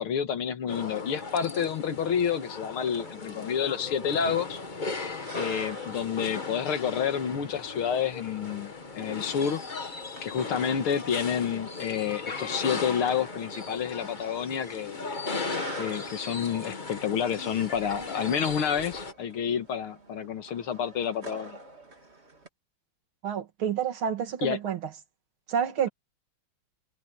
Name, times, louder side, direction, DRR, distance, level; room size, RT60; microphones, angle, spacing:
voice 1, 0.0-4.6 5.3-9.6 10.2-15.0 15.8-21.6 24.4-24.6, left 8 dB, 85° left, 2.4 m, -29 dB
sound 1, 0.7-19.1, left 4 dB, 25° left, 1.2 m, -37 dB
sound 2, 2.8-22.5, right 2 dB, 30° right, 3.4 m, -49 dB
voice 2, 23.2-24.8 25.5-25.9, right 8 dB, 75° right, 2.6 m, -28 dB
omnidirectional pair, 2.3 m